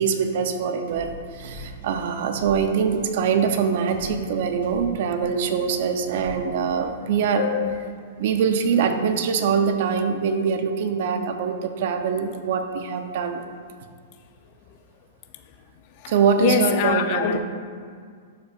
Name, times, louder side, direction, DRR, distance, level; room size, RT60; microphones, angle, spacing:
voice 1, 0.0-7.5 8.2-13.4 16.1-17.4, right 6 dB, 55° right, 0.6 m, -23 dB
sound 1, 0.9-6.9, right 1 dB, 70° right, 1.3 m, -42 dB
voice 2, 7.4-7.8 16.0-16.1 16.4-17.4, left 9 dB, 40° left, 0.5 m, -23 dB
12.0 x 5.3 x 2.4 m
hypercardioid pair, 155°, 0 cm